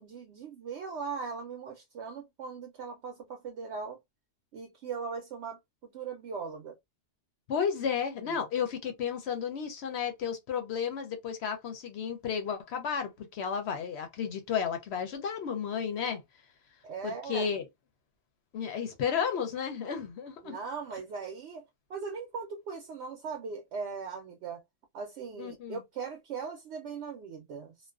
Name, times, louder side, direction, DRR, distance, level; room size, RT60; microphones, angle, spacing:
voice 1, 0.0-4.0 4.5-5.6 5.9-6.7 8.3-8.4 16.8-17.5 20.4-21.6 21.9-24.6 24.9-27.7, right 5 dB, 65° right, 0.8 m, -39 dB
voice 2, 7.5-16.2 17.0-17.7 18.5-20.6 25.4-25.8, left 7 dB, 65° left, 0.8 m, -33 dB
2.4 x 2.2 x 2.3 m
omnidirectional pair, 1.3 m